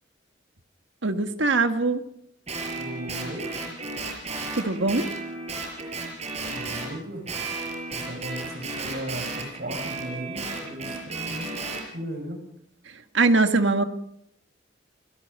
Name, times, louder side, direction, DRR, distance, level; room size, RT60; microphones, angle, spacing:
voice 1, 1.0-2.0 4.5-5.1 13.1-13.8, right 3 dB, 80° right, 7 dB, 1.6 m, -22 dB
Guitar, 2.5-6.9 7.3-11.8, right 3 dB, 35° right, 5.6 m, -34 dB
voice 2, 2.8-3.5 6.5-7.3 7.9-12.4, right 1 dB, 55° right, 6 dB, 5.8 m, -37 dB
29.0 x 17.5 x 5.4 m, 0.76 s
head